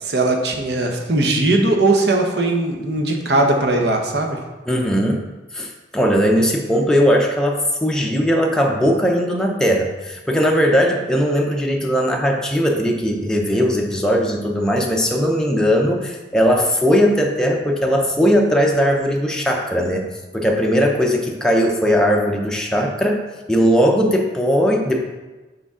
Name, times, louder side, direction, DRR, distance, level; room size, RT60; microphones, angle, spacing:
voice 1, 0.0-4.4, right 2 dB, 65° right, 2 dB, 1.0 m, -19 dB
voice 2, 4.7-5.2 5.5-20.1 20.3-23.2 23.5-25.0, equal, 5° left, 0 dB, 0.5 m, -18 dB
6.7 x 5.1 x 3.7 m, 1.2 s
head